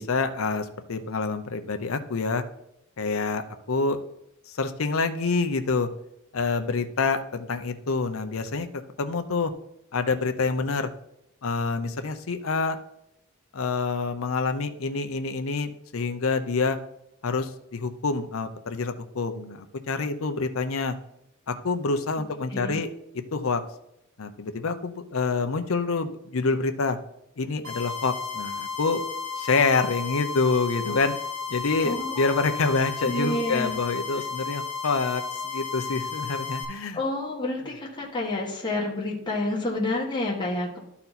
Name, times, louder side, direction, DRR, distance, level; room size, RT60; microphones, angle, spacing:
voice 1, 0.0-2.4 3.0-4.0 4.5-5.9 6.3-9.5 9.9-10.9 11.4-12.8 13.5-16.8 17.2-21.0 21.5-22.9 23.3-23.6 24.2-27.0 27.4-29.0 29.4-31.1 31.5-37.0, left 4 dB, 70° left, 8 dB, 0.7 m, -27 dB
sound 1, 27.6-36.6, left 6 dB, 70° right, 2.5 m, -33 dB
voice 2, 31.8-32.5 33.0-33.7 36.9-40.8, left 2 dB, 20° left, -3 dB, 1.4 m, -29 dB
12.0 x 4.3 x 4.1 m, 0.78 s
head